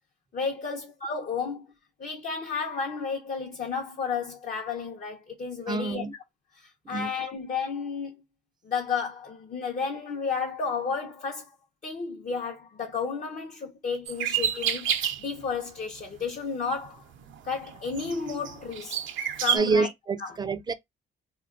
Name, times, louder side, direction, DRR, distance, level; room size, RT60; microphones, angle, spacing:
voice 1, 0.3-1.7 2.0-6.1 6.5-8.2 8.6-11.5 11.8-14.9 15.2-17.0 17.4-19.0 19.4-19.9 20.2-20.4, left 5 dB, 40° left, 0.6 m, -32 dB
voice 2, 5.7-6.1 6.9-7.1 19.5-20.7, right 4 dB, 20° right, 0.4 m, -27 dB
sound 1, 14.1-15.4 16.0-16.2 16.8-19.6, right 9 dB, 75° right, 0.6 m, -30 dB
2.3 x 2.2 x 3.6 m
cardioid pair, 90°, 20 cm